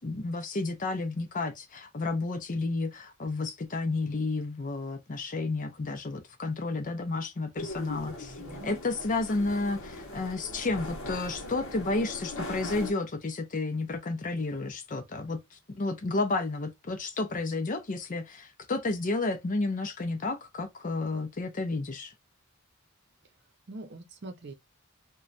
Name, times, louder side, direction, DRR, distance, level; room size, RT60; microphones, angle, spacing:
voice 1, 0.0-8.4 8.6-22.1, left 3 dB, 35° left, 0.5 m, -31 dB
sound 1, 7.5-12.9, left 1 dB, 60° left, 0.8 m, -40 dB
voice 2, 8.4-8.8 23.7-24.5, right 2 dB, 50° right, 0.7 m, -43 dB
3.0 x 2.2 x 2.5 m
head